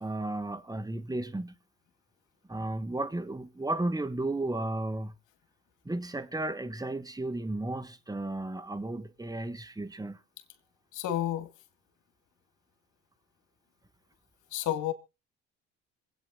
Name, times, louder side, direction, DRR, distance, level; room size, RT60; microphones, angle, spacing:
voice 1, 0.0-1.5 2.5-5.1 5.8-10.2, right 2 dB, 10° right, 1.5 m, -34 dB
voice 2, 10.9-11.5 14.5-14.9, left 12 dB, 70° left, 2.2 m, -30 dB
26.0 x 8.8 x 2.6 m
supercardioid pair, 70°, 32 cm